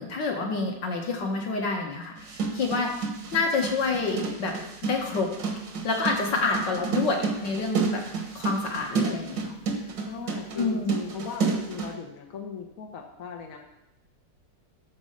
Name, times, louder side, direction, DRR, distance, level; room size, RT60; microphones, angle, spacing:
voice 1, 0.0-2.9 3.3-4.6 4.9-5.3 5.8-8.0 8.4-9.5 10.6-10.9, left 3 dB, 85° left, 1 dB, 2.1 m, -28 dB
sound 1, 2.2-11.9, right 4 dB, 85° right, 2.0 m, -30 dB
voice 2, 10.1-13.6, left 6 dB, 55° left, 3 dB, 1.3 m, -38 dB
12.5 x 4.4 x 6.6 m, 0.87 s
omnidirectional pair, 1.9 m